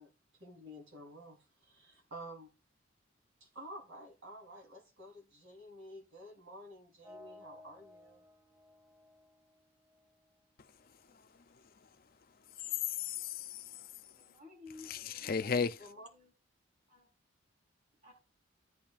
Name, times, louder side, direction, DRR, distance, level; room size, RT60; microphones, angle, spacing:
voice 1, 0.0-2.5 3.4-8.2 15.8-16.1, equal, 90° right, 3.8 m, -51 dB
sound 1, 7.0-11.0, left 2 dB, 20° right, 1.8 m, -58 dB
voice 2, 10.6-11.9 12.5-14.2 14.8-15.9, left 6 dB, 45° left, 0.5 m, -38 dB
voice 3, 14.2-15.3 16.1-16.3 16.9-17.1 18.0-18.1, left 3 dB, 40° right, 4.4 m, -54 dB
14.5 x 8.8 x 2.5 m
head